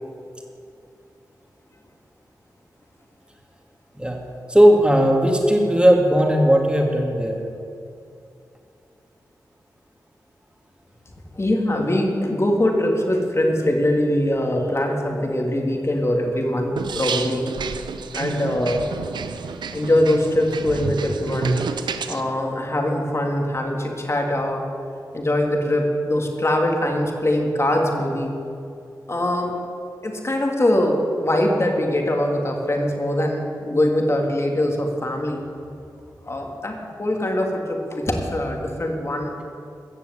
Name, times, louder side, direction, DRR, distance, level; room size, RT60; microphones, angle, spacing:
voice 1, 4.5-7.3, equal, 15° right, 1 dB, 2.7 m, -16 dB
voice 2, 11.3-17.4 18.1-18.8 19.7-21.6 22.1-24.6 25.1-28.3 29.1-29.5 30.0-35.4 36.2-39.3, left 1 dB, 35° left, 1 dB, 2.6 m, -22 dB
sound 1, 16.8-22.2, right 5 dB, 85° right, 0.6 m, -30 dB
15.0 x 7.0 x 8.3 m, 2.5 s
cardioid pair, 45°, 7 cm